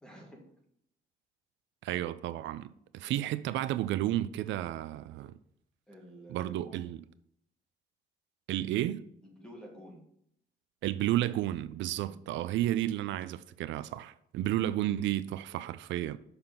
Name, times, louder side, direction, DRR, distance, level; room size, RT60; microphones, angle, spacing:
voice 1, 0.0-0.5 3.0-3.3 5.9-6.8 9.2-10.0 12.0-12.2, equal, 5° left, 1.8 m, -51 dB
voice 2, 1.8-2.7 2.9-5.3 6.3-7.0 8.5-9.0 10.8-16.2, right 13 dB, 85° right, 0.4 m, -32 dB
6.9 x 5.6 x 3.9 m
cardioid pair, 165°, 19 cm